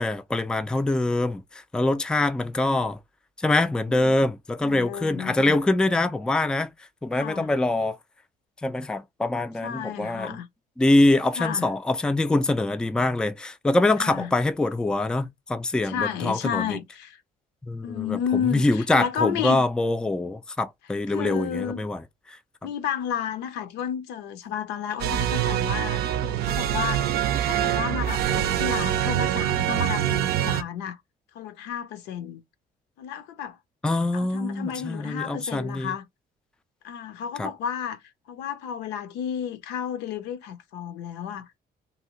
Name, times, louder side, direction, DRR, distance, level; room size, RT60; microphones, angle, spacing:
voice 1, 0.0-3.0 3.4-6.7 7.0-8.0 8.6-10.4 10.8-16.8 17.7-22.0 22.3-22.4 33.8-35.9 37.4-37.5, left 2 dB, 5° left, 0.3 m, -24 dB
voice 2, 4.6-5.6 7.1-7.5 9.6-10.5 11.4-11.7 14.0-14.3 15.8-17.2 17.8-19.7 21.1-21.8 22.6-31.0 31.3-32.4 33.0-33.6 34.1-36.1 36.8-41.5, left 8 dB, 85° left, 0.6 m, -32 dB
sound 1, 25.0-30.6, right 11 dB, 70° right, 0.5 m, -25 dB
2.7 x 2.6 x 2.9 m
cardioid pair, 110°, 17 cm